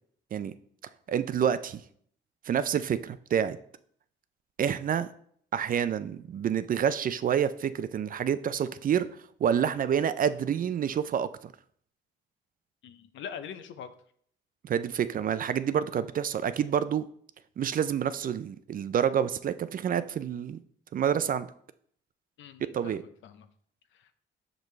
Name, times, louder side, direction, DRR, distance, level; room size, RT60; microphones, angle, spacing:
voice 1, 1.1-1.8 2.5-3.6 4.6-5.1 5.5-9.1 9.4-11.5 14.6-17.1 17.6-20.6 20.9-21.5 22.7-23.0, right 8 dB, 45° right, 14 dB, 0.4 m, -28 dB
voice 2, 12.8-13.9 22.4-23.5 23.9-24.1, left 8 dB, 75° left, 10 dB, 0.6 m, -43 dB
6.0 x 5.2 x 3.2 m, 0.62 s
cardioid pair, 90°, 20 cm